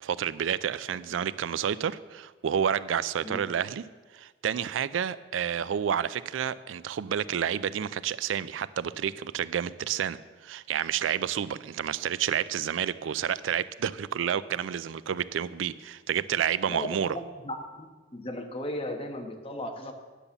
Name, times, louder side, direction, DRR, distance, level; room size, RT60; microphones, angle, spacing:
voice 1, 0.0-3.8 4.1-17.2, right 8 dB, 85° right, 17 dB, 0.4 m, -30 dB
voice 2, 16.7-17.9 18.1-19.9, left 1 dB, 30° left, 4 dB, 1.1 m, -36 dB
10.0 x 6.9 x 6.9 m, 1.3 s
head